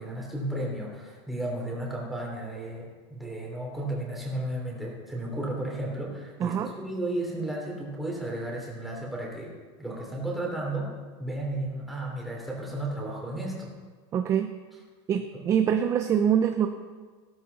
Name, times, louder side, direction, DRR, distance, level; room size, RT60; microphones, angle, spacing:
voice 1, 0.0-9.5 9.8-10.9 11.2-13.7 15.3-15.5, right 1 dB, ahead, -3 dB, 3.1 m, -33 dB
voice 2, 14.1-14.5 15.1-16.7, right 8 dB, 20° right, 7 dB, 0.5 m, -24 dB
16.0 x 14.0 x 4.1 m, 1.5 s
supercardioid pair, 165°, 15 cm